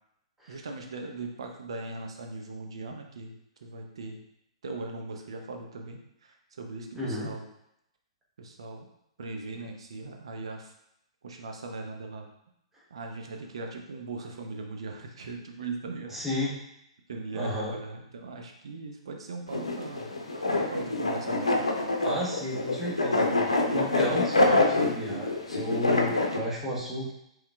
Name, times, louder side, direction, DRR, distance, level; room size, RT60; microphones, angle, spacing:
voice 1, 0.5-3.3 3.6-4.2 4.6-7.5 8.4-8.9 9.2-10.7 11.2-12.3 12.9-16.1 17.1-20.1 20.7-21.7, right 3 dB, 60° right, 2 dB, 0.7 m, -39 dB
voice 2, 6.9-7.3 16.1-16.6 17.3-17.8 22.0-27.1, left 1 dB, 10° right, -5 dB, 1.1 m, -33 dB
sound 1, 19.5-26.4, left 2 dB, 75° left, 0.7 m, -26 dB
5.5 x 3.7 x 2.3 m, 0.79 s
figure-of-eight pair, 115°, 3 cm